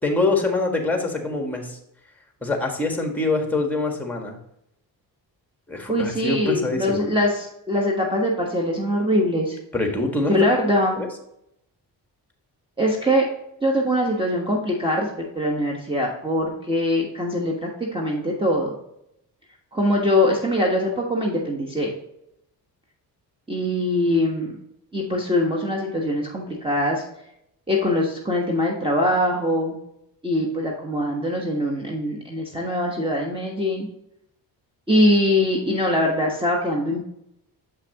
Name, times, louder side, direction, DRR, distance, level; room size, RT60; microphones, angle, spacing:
voice 1, 0.0-1.8 2.4-4.4 5.7-7.1 9.7-10.4 11.0-11.1, left 2 dB, 5° left, 3 dB, 1.6 m, -24 dB
voice 2, 5.9-9.6 10.3-11.0 12.8-13.3 13.6-18.7 19.7-21.9 23.5-24.5 24.9-27.0 27.7-29.7 30.2-33.9 34.9-37.0, left 1 dB, 15° right, -2 dB, 1.3 m, -22 dB
7.3 x 5.9 x 2.9 m, 0.78 s
cardioid pair, 95°, 41 cm